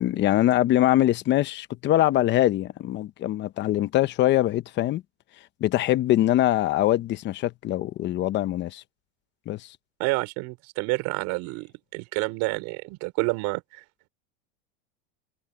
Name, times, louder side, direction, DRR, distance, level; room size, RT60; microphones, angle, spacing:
voice 1, 0.0-5.0 5.6-8.8 9.5-9.7, left 14 dB, 35° left, 1.0 m, -23 dB
voice 2, 10.0-13.6, right 25 dB, 55° right, 5.6 m, -28 dB
supercardioid pair, 140°, 33 cm